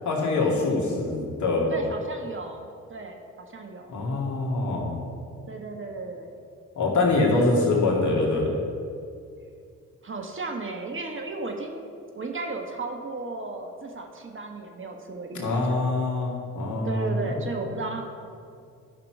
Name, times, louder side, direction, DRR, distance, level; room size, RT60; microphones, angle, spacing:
voice 1, 0.1-1.7 3.9-5.0 6.8-8.6 15.3-17.1, left 2 dB, 55° left, -1 dB, 2.3 m, -24 dB
voice 2, 1.7-4.0 5.5-6.4 10.0-11.9 12.1-15.8 16.8-18.0, right 3 dB, 35° right, 3 dB, 1.4 m, -35 dB
11.5 x 5.9 x 4.8 m, 2.4 s
hypercardioid pair, 45°, 34 cm